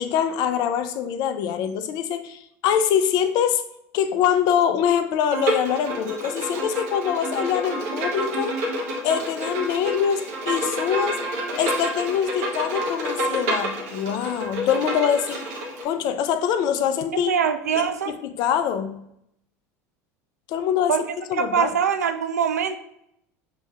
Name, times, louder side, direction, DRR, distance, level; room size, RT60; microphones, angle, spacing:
voice 1, 0.0-3.6 3.9-8.5 9.0-11.2 11.6-15.4 15.8-17.3 17.8-19.0 20.5-20.9 21.3-21.7, left 8 dB, 55° left, 10 dB, 0.4 m, -24 dB
Bowed string instrument, 5.3-15.8, right 1 dB, 70° right, 0.9 m, -28 dB
voice 2, 17.1-18.1 20.9-21.0 21.3-22.8, right 7 dB, 85° right, 9 dB, 0.3 m, -23 dB
6.0 x 2.7 x 2.3 m, 0.77 s
hypercardioid pair, 75°, 9 cm